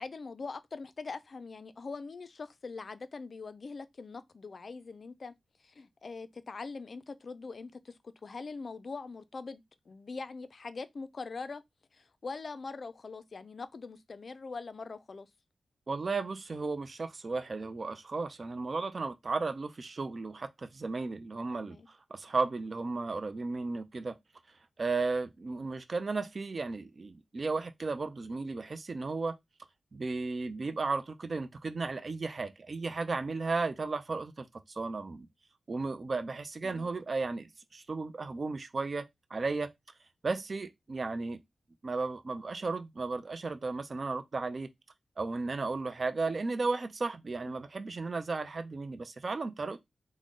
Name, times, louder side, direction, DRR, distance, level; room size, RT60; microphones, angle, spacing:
voice 1, 0.0-5.3 5.6-11.6 11.9-15.3 21.5-21.9 36.6-36.9 47.4-47.5, left 4 dB, 50° left, 0.3 m, -42 dB
voice 2, 15.9-24.2 24.8-29.3 29.9-35.3 35.7-39.7 40.2-41.4 41.8-44.7 45.2-49.8, right 3 dB, 45° right, 0.3 m, -34 dB
3.7 x 2.0 x 3.6 m
wide cardioid pair, 115°, 0 cm